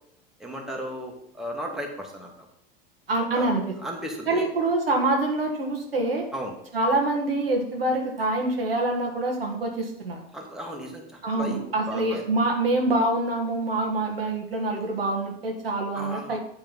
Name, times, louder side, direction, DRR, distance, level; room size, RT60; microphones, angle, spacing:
voice 1, 0.4-2.3 3.3-3.5 3.8-4.5 6.3-6.5 10.3-11.6 11.9-12.2 15.9-16.4, equal, ahead, -1 dB, 1.7 m, -35 dB
voice 2, 3.1-3.7 4.3-6.3 6.7-10.2 11.2-16.4, right 2 dB, 80° right, 0 dB, 1.7 m, -25 dB
8.8 x 4.6 x 5.5 m, 0.71 s
figure-of-eight pair, 75°, 29 cm